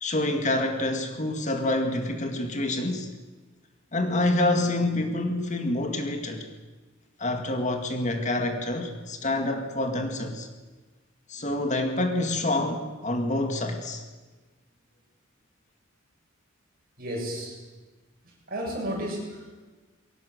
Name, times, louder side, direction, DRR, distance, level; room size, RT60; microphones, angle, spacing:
voice 1, 0.0-3.1 3.9-6.4 7.2-10.5 11.3-14.0, left 1 dB, 35° left, 5 dB, 2.1 m, -27 dB
voice 2, 17.0-17.6 18.2-19.5, equal, 45° right, -1 dB, 7.6 m, -33 dB
22.0 x 18.0 x 8.0 m, 1.3 s
head